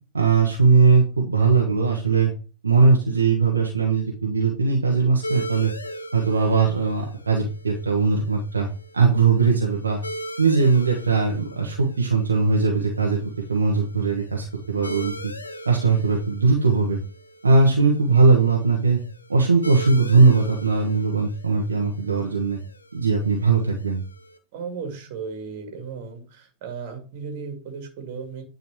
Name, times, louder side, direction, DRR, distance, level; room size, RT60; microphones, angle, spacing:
voice 1, 0.1-2.3 2.6-5.7 6.1-8.7 8.9-10.0 10.4-15.3 15.6-17.0 17.4-19.0 19.3-22.6 22.9-24.0, right 4 dB, 75° right, -1 dB, 1.2 m, -20 dB
sound 1, 5.2-24.4, equal, 80° left, 0.7 m, -40 dB
voice 2, 24.5-28.4, right 5 dB, 50° right, 5 dB, 2.0 m, -35 dB
9.6 x 4.0 x 3.2 m, 0.35 s
figure-of-eight pair, 90°, 0 cm